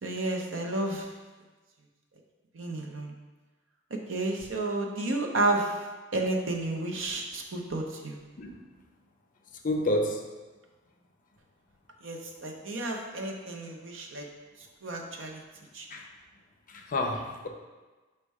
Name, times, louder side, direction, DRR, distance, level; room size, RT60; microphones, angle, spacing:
voice 1, 0.0-1.1 2.5-3.1 4.1-5.8 6.1-8.2 12.0-14.3 14.8-15.4 15.7-15.9, right 2 dB, 85° right, 1 dB, 0.6 m, -31 dB
voice 2, 9.6-10.3 14.9-15.1 15.9-16.1 16.7-17.5, left 1 dB, 45° left, 3 dB, 0.4 m, -30 dB
5.2 x 2.2 x 4.6 m, 1.3 s
head